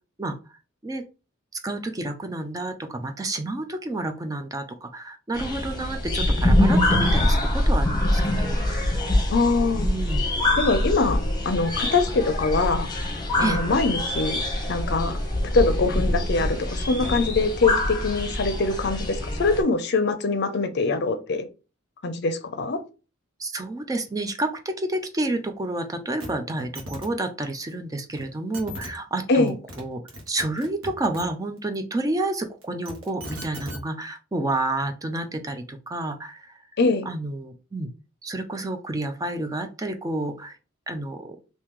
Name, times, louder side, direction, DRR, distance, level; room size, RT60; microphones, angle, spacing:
voice 1, 1.5-9.0 9.8-10.2 13.4-13.6 23.4-36.6 37.1-37.9 38.2-40.6 40.9-41.4, right 2 dB, 15° right, 7 dB, 0.4 m, -30 dB
sound 1, 5.3-19.6, left 1 dB, 20° left, 0.8 m, -24 dB
voice 2, 9.3-9.9 10.6-11.2 11.4-12.9 13.4-14.4 14.7-15.2 15.5-21.4 22.0-22.8 29.3-29.5 36.8-37.1, left 3 dB, 55° left, 9 dB, 0.5 m, -23 dB
sound 2, 26.2-26.3 26.6-27.1 28.2-28.3 28.5-28.9 29.5-29.8 30.1-31.2 32.6-33.8 34.8-34.9, equal, 70° right, 1.4 m, -37 dB
3.0 x 2.7 x 3.6 m, 0.32 s
head